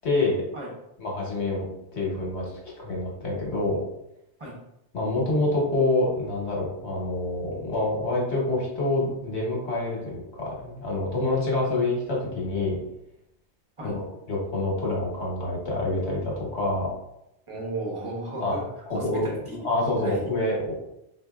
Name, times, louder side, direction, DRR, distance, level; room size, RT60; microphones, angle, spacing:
voice 1, 0.0-0.4 1.0-1.6 1.9-2.5 2.8-3.8 4.9-12.8 13.8-16.9 18.4-18.6 18.9-19.2 19.6-20.7, left 2 dB, 70° left, -3 dB, 1.3 m, -27 dB
voice 2, 17.5-18.6 18.9-19.6 20.0-20.2, right 2 dB, 30° right, -3 dB, 0.9 m, -34 dB
4.3 x 2.6 x 2.3 m, 0.84 s
omnidirectional pair, 1.2 m